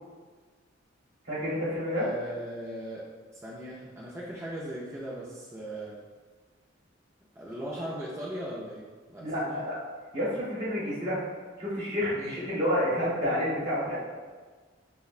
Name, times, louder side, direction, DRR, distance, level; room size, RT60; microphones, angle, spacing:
voice 1, 1.3-2.1 9.2-9.8 10.1-11.2 11.6-14.0, equal, 45° right, -9 dB, 1.0 m, -29 dB
voice 2, 1.9-3.0 3.3-6.0 7.4-9.6 12.2-12.4, right 1 dB, 15° right, -7 dB, 0.4 m, -38 dB
5.5 x 2.1 x 2.4 m, 1.4 s
head